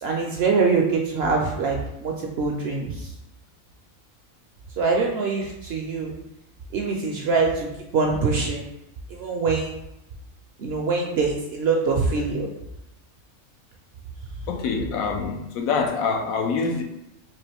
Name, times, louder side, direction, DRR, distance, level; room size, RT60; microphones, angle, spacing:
voice 1, 0.0-3.1 4.8-6.1 6.7-7.7 7.9-8.6 9.1-9.8 10.6-12.5, right 4 dB, 65° right, 0 dB, 0.6 m, -24 dB
voice 2, 14.5-16.8, left 5 dB, 85° left, 3 dB, 1.0 m, -25 dB
3.7 x 2.8 x 3.3 m, 0.89 s
omnidirectional pair, 1.4 m